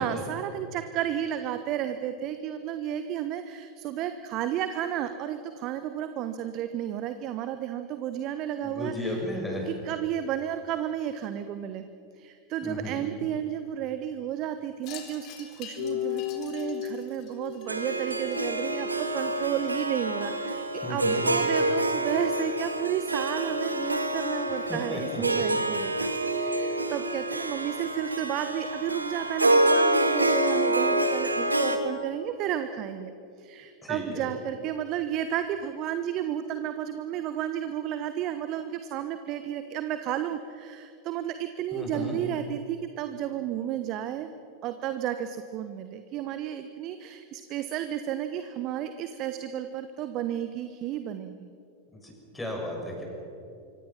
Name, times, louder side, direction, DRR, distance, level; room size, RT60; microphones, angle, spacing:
voice 1, 0.0-9.2 9.6-11.9 12.2-33.1 33.4-44.3 44.6-51.5, right 10 dB, 40° right, 10 dB, 1.1 m, -32 dB
voice 2, 8.6-9.7 12.6-13.0 20.8-21.2 24.5-25.2 33.8-34.3 41.7-42.2 52.0-53.0, left 1 dB, 10° left, 0 dB, 6.4 m, -34 dB
Wind chime, 14.8-19.5, left 9 dB, 40° left, 3.9 m, -48 dB
sound 1, 15.8-19.0, left 9 dB, 55° left, 6.5 m, -35 dB
Harp, 17.7-31.8, right 1 dB, 80° right, 2.0 m, -27 dB
25.5 x 25.5 x 6.0 m, 2.6 s
figure-of-eight pair, 90°, 0 cm